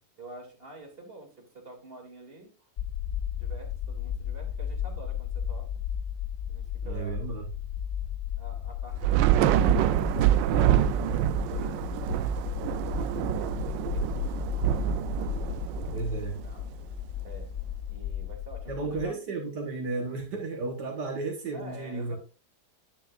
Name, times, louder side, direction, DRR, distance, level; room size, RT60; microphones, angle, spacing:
voice 1, 0.2-2.7 3.4-5.7 6.5-7.2 8.3-10.7 11.4-14.7 15.1-16.7 17.2-17.5 17.9-19.1 21.5-22.2, right 1 dB, 30° right, 1 dB, 2.9 m, -48 dB
sound 1, 2.8-19.0, left 9 dB, 75° left, 0.6 m, -34 dB
voice 2, 6.8-7.5 15.9-16.4 18.7-22.2, right 3 dB, 70° right, 2 dB, 2.0 m, -33 dB
Thunder / Rain, 9.0-16.6, right 12 dB, 90° right, 1.3 m, -26 dB
10.0 x 9.2 x 2.5 m, 0.31 s
omnidirectional pair, 1.9 m